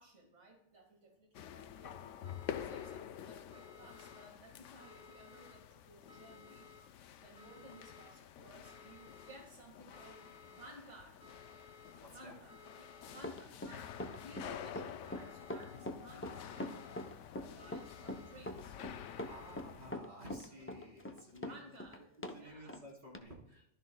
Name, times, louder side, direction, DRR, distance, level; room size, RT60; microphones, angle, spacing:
voice 1, 0.0-2.0 2.6-6.7 7.2-11.2 12.1-17.0 17.4-18.8 21.1-22.8, right 1 dB, 80° right, 1 dB, 2.2 m, -57 dB
sound 1, 1.3-19.9, left 9 dB, 85° left, 0.9 m, -49 dB
sound 2, 2.2-3.0 3.5-4.3 4.8-5.5 6.1-6.8 7.4-8.1 8.6-9.4 9.9-10.7 11.2-11.9 12.5-13.2 13.8-14.5 15.0-15.8 16.3-17.1 17.6-18.3 18.9-19.6, left 3 dB, 35° left, 1.5 m, -58 dB
voice 2, 12.0-12.3 19.3-21.7 22.3-23.7, equal, 45° right, -5 dB, 4.1 m, -53 dB
Run, 13.2-22.4 22.7-22.8 23.1-23.2, left 1 dB, 20° left, 0.4 m, -43 dB
14.5 x 12.5 x 2.3 m, 0.78 s
omnidirectional pair, 1.2 m